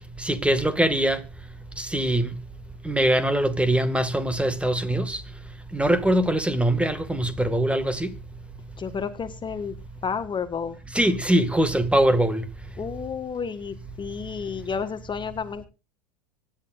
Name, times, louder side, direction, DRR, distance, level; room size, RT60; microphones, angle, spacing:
voice 1, 0.2-1.2 1.8-2.3 2.8-5.2 5.7-8.1 10.9-12.4, right 1 dB, 5° right, 2.0 m, -22 dB
voice 2, 8.8-9.7 10.0-10.8 12.8-15.7, left 6 dB, 25° left, 1.6 m, -31 dB
25.0 x 10.0 x 2.5 m
figure-of-eight pair, 85°, 21 cm